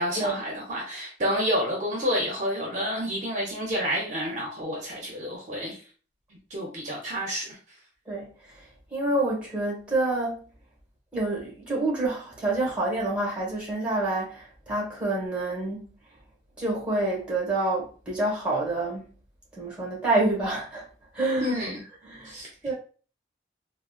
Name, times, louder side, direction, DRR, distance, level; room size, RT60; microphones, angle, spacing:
voice 1, 0.0-5.8 6.5-7.6 21.4-21.8 22.2-22.5, equal, 40° right, 0.7 m, -29 dB
voice 2, 8.1-10.4 11.1-15.9 16.6-19.1 19.5-20.9 21.1-21.6 22.0-22.3 22.6-22.7, right 2 dB, 5° right, 1.1 m, -28 dB
3.6 x 2.1 x 2.4 m
head